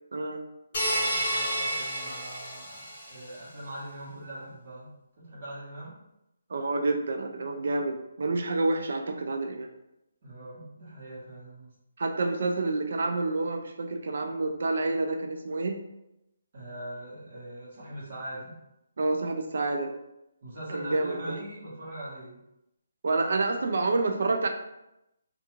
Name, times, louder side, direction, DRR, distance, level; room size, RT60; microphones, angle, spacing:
sound 1, 0.7-3.2, equal, 25° left, 1.1 m, -30 dB
voice 1, 0.7-4.9 5.2-6.0 10.2-11.7 16.5-18.6 20.4-22.4, right 1 dB, 40° right, -6 dB, 1.0 m, -41 dB
voice 2, 6.5-9.7 12.0-15.8 19.0-19.9 20.7-21.4 23.0-24.5, right 2 dB, 55° right, 4 dB, 0.3 m, -28 dB
2.4 x 2.3 x 2.9 m, 0.87 s
hypercardioid pair, 175°, 0 cm